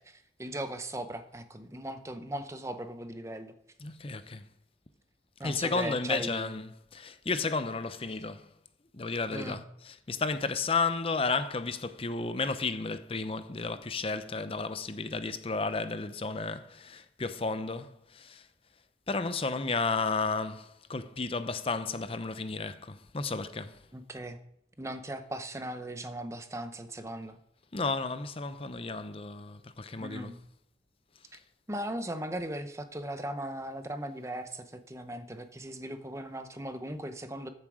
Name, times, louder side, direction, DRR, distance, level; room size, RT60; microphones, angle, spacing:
voice 1, 0.0-3.5 5.4-6.5 9.3-9.6 23.9-24.4 24.8-27.4 30.0-30.4 31.3-31.4 31.7-37.5, right 1 dB, 15° right, 0.8 m, -38 dB
voice 2, 3.8-4.5 5.4-8.5 8.9-18.5 19.1-23.8 27.7-30.3, left 4 dB, 30° left, 0.7 m, -33 dB
14.0 x 7.4 x 4.9 m
head